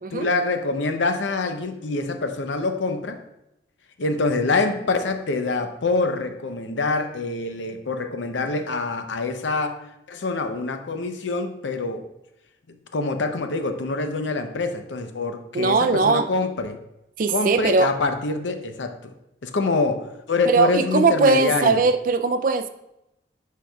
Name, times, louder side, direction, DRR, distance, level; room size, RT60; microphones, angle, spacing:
voice 1, 0.1-3.2 4.0-9.8 10.1-12.0 12.7-16.8 17.3-19.1 19.4-21.8, left 3 dB, 85° left, 7 dB, 0.7 m, -25 dB
voice 2, 15.5-16.3 17.2-17.9 20.4-22.7, right 4 dB, 45° right, 9 dB, 0.4 m, -20 dB
10.0 x 4.7 x 2.3 m, 0.87 s
head